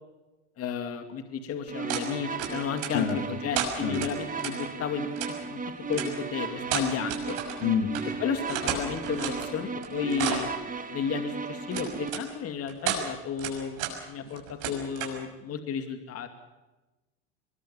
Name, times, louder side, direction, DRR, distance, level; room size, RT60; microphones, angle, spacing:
voice 1, 0.6-3.1 3.4-5.1 5.5-5.6 5.9-7.4 8.2-10.5 10.9-13.8 14.1-16.3, left 7 dB, 40° left, 7 dB, 2.6 m, -33 dB
sound 1, 1.7-12.1, right 4 dB, 20° right, 2.7 m, -35 dB
sound 2, 1.9-2.1 2.4-3.1 3.5-4.5 5.2-5.3 5.9-6.1 6.6-7.6 7.9-8.0 8.3-9.5 9.8-10.5 11.7-12.2 12.7-13.0 13.4-13.9 14.2-15.2, right 8 dB, 60° right, 6.3 m, -32 dB
voice 2, 7.6-7.9, left 8 dB, 65° left, 7 dB, 2.9 m, -27 dB
23.5 x 21.5 x 7.0 m, 1.1 s
hypercardioid pair, 90°, 35 cm